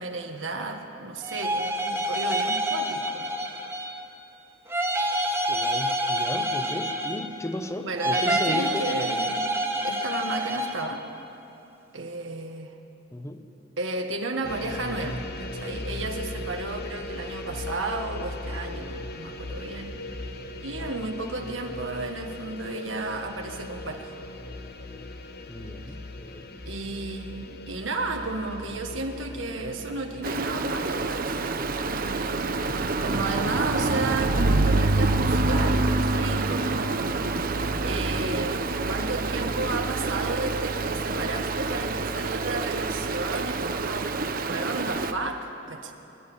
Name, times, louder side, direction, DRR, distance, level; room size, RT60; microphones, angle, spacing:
voice 1, 0.0-3.2 7.8-9.5 9.8-11.1 11.9-12.7 13.8-20.2 20.6-24.2 26.6-31.6 31.9-32.5 33.0-37.2 37.8-38.6 38.9-45.9, right 3 dB, 80° right, 3 dB, 1.4 m, -33 dB
sound 1, 1.2-4.1 4.7-7.5 8.0-10.9, right 1 dB, 15° right, 1.5 m, -27 dB
voice 2, 5.5-8.9 13.1-13.4 25.5-26.5, left 1 dB, 15° left, 7 dB, 1.0 m, -35 dB
sound 2, 14.4-33.5, left 2 dB, 55° left, 1.2 m, -38 dB
Stream, 30.2-45.1, right 3 dB, 50° right, 0.8 m, -26 dB
24.0 x 11.0 x 9.9 m, 3.0 s
head